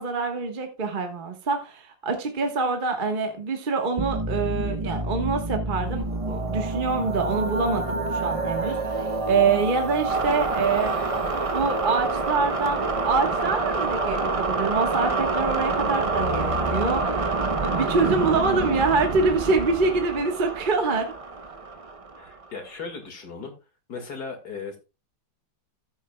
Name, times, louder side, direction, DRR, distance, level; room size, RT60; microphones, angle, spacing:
voice 1, 0.0-10.9 11.5-17.3 17.6-21.1, right 4 dB, 30° right, 4 dB, 1.3 m, -25 dB
sound 1, 4.0-22.4, right 3 dB, 55° right, 0.3 m, -27 dB
voice 2, 22.2-23.5 23.9-24.8, left 4 dB, 60° left, 4 dB, 2.5 m, -37 dB
14.5 x 8.3 x 2.2 m, 0.28 s
omnidirectional pair, 1.9 m